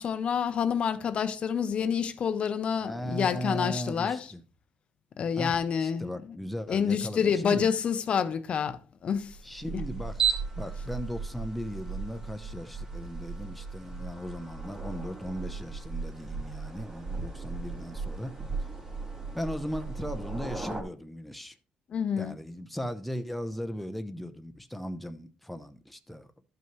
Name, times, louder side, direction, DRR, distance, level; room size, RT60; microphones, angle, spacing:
voice 1, 0.0-4.2 5.2-6.1 6.7-9.4 9.7-9.8 21.9-22.3, left 7 dB, 45° left, 0.6 m, -28 dB
voice 2, 2.8-4.4 5.4-7.7 9.4-10.3 10.6-18.4 19.3-21.6 22.2-26.3, equal, ahead, 0.6 m, -37 dB
sound 1, 9.2-20.8, right 5 dB, 25° right, 1.9 m, -36 dB
12.5 x 5.5 x 3.0 m
cardioid pair, 125°, 3 cm